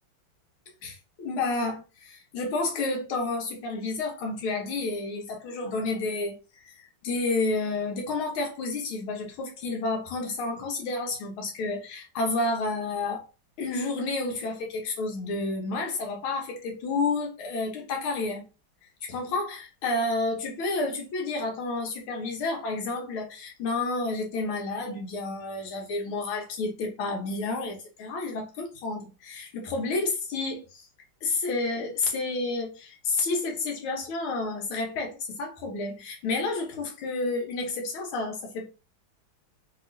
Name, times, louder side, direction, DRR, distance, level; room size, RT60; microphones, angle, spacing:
voice 1, 0.8-6.4 6.6-13.2 13.6-18.5 19.0-30.9 31.2-38.7, left 3 dB, 85° left, 1.8 m, -30 dB
3.6 x 2.9 x 2.5 m
omnidirectional pair, 2.3 m